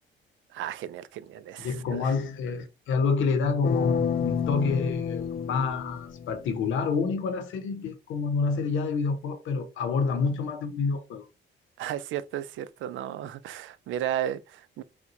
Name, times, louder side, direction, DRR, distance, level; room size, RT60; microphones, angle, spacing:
voice 1, 0.5-2.1 11.8-14.8, right 11 dB, 75° right, 0.4 m, -34 dB
voice 2, 1.6-11.3, left 4 dB, 75° left, 0.8 m, -28 dB
sound 1, 3.6-6.6, left 7 dB, 50° left, 0.4 m, -30 dB
4.3 x 2.2 x 2.6 m
cardioid pair, 90°, 20 cm